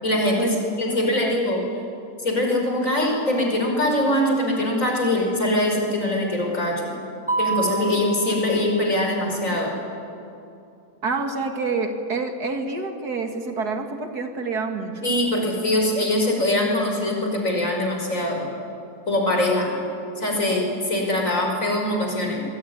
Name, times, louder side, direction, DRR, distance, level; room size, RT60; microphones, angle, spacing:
voice 1, 0.0-1.6 2.2-6.9 7.4-9.7 15.0-18.4 19.1-19.7 20.2-22.4, left 1 dB, 55° left, 1 dB, 5.8 m, -22 dB
voice 2, 0.9-1.4 11.0-15.1, right 4 dB, 80° right, 4 dB, 2.8 m, -28 dB
Mallet percussion, 7.3-9.3, right 4 dB, 5° right, 1.2 m, -28 dB
26.5 x 22.0 x 9.9 m, 2.6 s
omnidirectional pair, 1.7 m